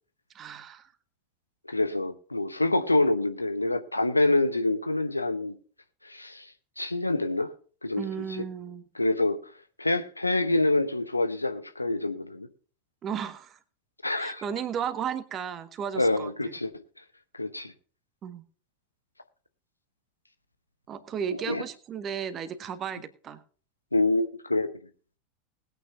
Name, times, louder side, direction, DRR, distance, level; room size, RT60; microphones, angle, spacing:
voice 1, 0.3-0.9 8.0-8.8 13.0-13.6 14.2-16.5 18.2-18.4 20.9-23.4, right 7 dB, 30° right, 1.5 m, -34 dB
voice 2, 1.7-5.6 6.0-6.5 6.8-7.5 7.8-8.4 9.0-9.4 9.8-12.5 14.0-14.4 16.0-16.7 17.4-17.7 21.5-21.6 23.9-24.7, left 2 dB, 85° left, 1.1 m, -26 dB
20.0 x 9.2 x 2.7 m
figure-of-eight pair, 85°, 0 cm